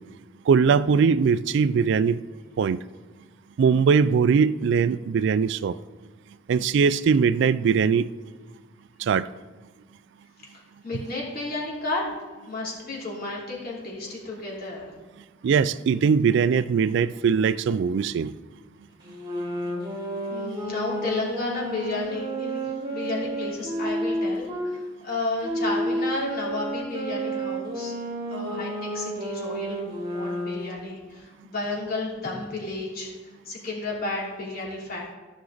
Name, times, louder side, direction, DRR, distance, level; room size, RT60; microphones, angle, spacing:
voice 1, 0.5-2.2 2.6-2.8 3.6-5.8 6.5-8.1 9.0-9.3 15.4-18.3, right 6 dB, 65° right, 0.3 m, -21 dB
voice 2, 10.8-12.0 12.5-14.9 20.3-27.9 28.3-29.8 30.1-33.1 33.4-35.2, left 2 dB, 50° left, 3.0 m, -32 dB
sound 1, 19.0-24.7 25.4-30.8, right 1 dB, 25° right, 2.2 m, -31 dB
14.5 x 6.2 x 3.9 m
head